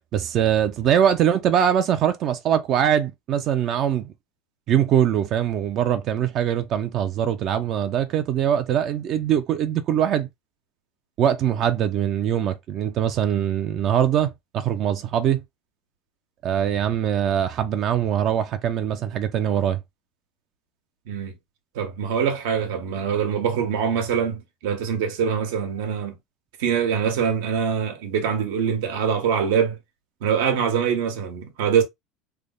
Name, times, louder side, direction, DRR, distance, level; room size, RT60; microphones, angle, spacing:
voice 1, 0.1-4.1 4.7-10.3 11.2-15.4 16.4-19.8, right 9 dB, 45° right, 0.4 m, -22 dB
voice 2, 21.7-26.1 26.6-29.8 30.2-31.8, right 7 dB, 85° right, 1.2 m, -24 dB
3.3 x 2.1 x 3.7 m
cardioid pair, 145°, 0 cm